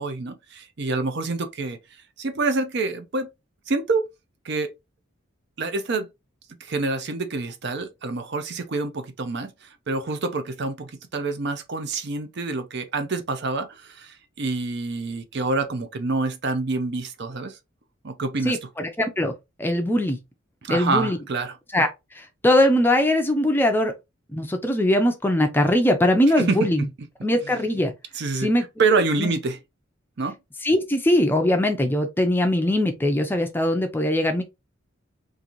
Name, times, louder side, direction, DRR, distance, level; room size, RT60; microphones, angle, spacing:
voice 1, 0.0-1.8 2.2-3.3 3.7-4.1 4.4-4.7 5.6-6.1 6.6-17.6 18.0-18.7 20.6-21.5 26.4-26.9 28.1-28.5 28.8-29.6 30.2-30.4, right 3 dB, 55° right, 0.5 m, -27 dB
voice 2, 18.4-19.3 19.6-20.2 20.7-21.2 21.7-21.9 22.1-23.9 24.3-26.9 27.2-27.9 28.4-28.7 29.2-29.3 30.6-34.4, left 1 dB, 10° left, 0.5 m, -21 dB
3.8 x 2.6 x 2.9 m
head